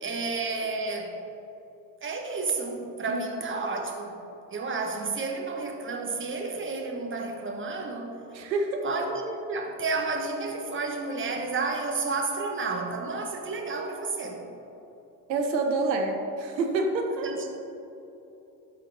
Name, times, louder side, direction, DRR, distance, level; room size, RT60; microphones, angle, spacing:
voice 1, 0.0-1.1 2.0-4.2 4.5-8.2 8.8-9.2 9.5-14.4 17.2-17.5, right 3 dB, 25° right, 2 dB, 1.3 m, -31 dB
voice 2, 8.3-8.9 9.5-9.6 15.3-17.3, right 3 dB, 85° right, 3 dB, 0.9 m, -28 dB
12.5 x 4.5 x 3.9 m, 3.0 s
hypercardioid pair, 70°, 50 cm